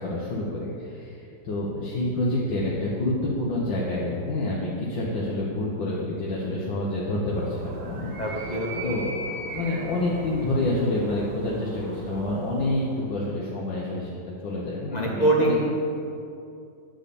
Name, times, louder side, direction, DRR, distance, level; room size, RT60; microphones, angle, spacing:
voice 1, 0.0-8.1 8.8-15.6, left 1 dB, 70° left, -5 dB, 1.8 m, -28 dB
Animal, 7.3-13.1, right 2 dB, 75° right, 1.8 m, -39 dB
voice 2, 8.2-8.8 14.9-15.7, right 1 dB, 40° left, -2 dB, 0.6 m, -24 dB
9.6 x 3.9 x 6.9 m, 2.5 s
omnidirectional pair, 2.1 m